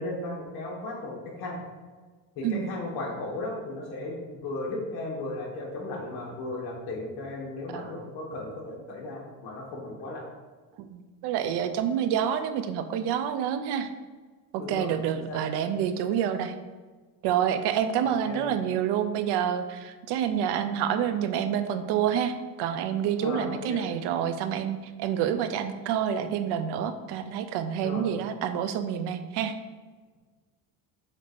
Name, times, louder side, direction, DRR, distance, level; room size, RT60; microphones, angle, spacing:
voice 1, 0.0-1.6 2.4-10.3 14.6-15.4 18.0-18.5 23.2-23.8 27.8-28.0, left 2 dB, 65° left, -2 dB, 1.9 m, -36 dB
voice 2, 10.8-13.9 14.5-16.5 17.2-29.6, right 9 dB, 75° right, 9 dB, 0.6 m, -28 dB
7.4 x 2.8 x 5.1 m, 1.4 s
cardioid pair, 160°, 41 cm